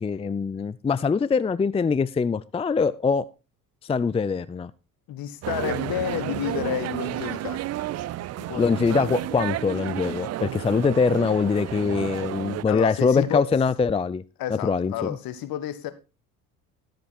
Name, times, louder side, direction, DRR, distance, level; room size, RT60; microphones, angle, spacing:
voice 1, 0.0-3.3 3.9-4.7 8.6-14.2 14.6-14.9, left 5 dB, 15° left, 0.5 m, -23 dB
voice 2, 5.1-7.6 8.4-9.0 12.7-13.4 14.4-15.9, left 11 dB, 60° left, 1.7 m, -30 dB
sound 1, 5.4-12.6, right 14 dB, 40° right, 0.5 m, -31 dB
13.0 x 7.7 x 4.4 m
hypercardioid pair, 60°, 40 cm